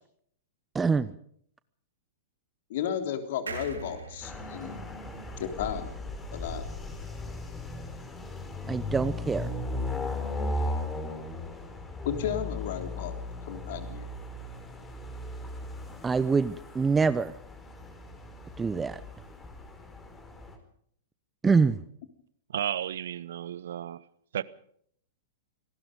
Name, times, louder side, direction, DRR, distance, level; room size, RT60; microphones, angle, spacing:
voice 1, 0.7-1.1 8.7-9.5 16.0-17.3 18.6-19.0 21.4-21.8, right 5 dB, 15° right, 0.8 m, -25 dB
voice 2, 2.7-4.8 5.4-5.9 6.3-6.6 12.0-13.1 13.4-14.1, left 9 dB, 55° left, 3.5 m, -33 dB
sound 1, 3.5-6.9 7.3-7.4 7.6-7.7, right 5 dB, 75° right, 5.9 m, -44 dB
sound 2, 4.2-20.5, left 2 dB, 15° left, 4.7 m, -37 dB
voice 3, 22.5-24.0 24.3-24.4, right 10 dB, 60° right, 1.0 m, -33 dB
27.5 x 19.5 x 5.2 m
figure-of-eight pair, 105°, 0 cm